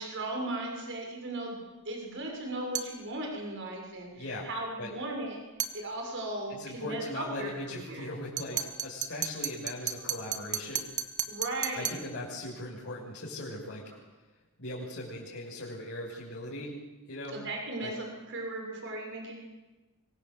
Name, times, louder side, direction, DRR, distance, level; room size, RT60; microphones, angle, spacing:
voice 1, 0.0-1.6 1.9-5.4 5.7-8.1 8.5-8.7 10.1-10.2 11.3-12.0 17.3-19.4, right 2 dB, 55° right, 1 dB, 6.9 m, -37 dB
sound 1, 2.7-3.0 5.6-5.8 8.4-12.1, right 8 dB, 35° right, 1.8 m, -34 dB
voice 2, 4.2-4.5 4.8-4.9 6.5-10.9 11.7-13.8 14.6-16.7 17.1-17.3 17.8-17.9, left 1 dB, 55° left, -5 dB, 6.4 m, -39 dB
25.5 x 23.5 x 8.0 m, 1.1 s
head